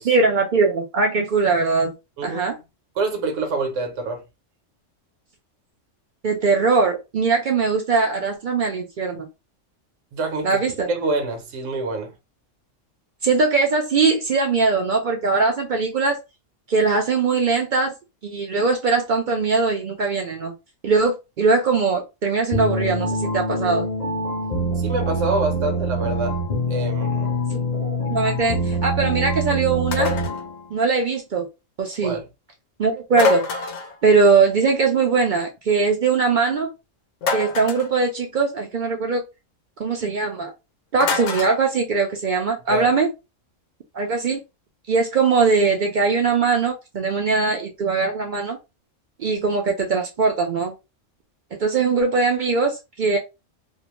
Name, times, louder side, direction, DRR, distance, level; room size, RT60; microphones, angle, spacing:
voice 1, 0.0-1.9 2.2-2.6 6.2-9.3 10.4-10.9 13.2-16.2 16.7-17.9 18.2-20.5 20.8-23.9 27.8-30.1 30.7-31.5 31.8-32.2 32.8-33.5 34.0-36.7 37.3-39.2 39.8-40.5 40.9-43.1 43.9-44.4 44.9-48.6 49.2-50.7 51.6-53.2, right 4 dB, 60° right, 0.5 m, -21 dB
voice 2, 2.2-2.6 3.0-4.2 10.1-12.1 24.8-26.4 26.7-27.4 32.0-32.3 42.7-42.9, right 3 dB, 75° right, 1.1 m, -26 dB
sound 1, 22.5-30.6, equal, 50° left, 0.5 m, -25 dB
sound 2, 29.9-30.4 33.1-34.0 37.2-37.9 41.0-41.6, left 4 dB, 70° left, 0.9 m, -24 dB
2.6 x 2.1 x 2.9 m
omnidirectional pair, 1.3 m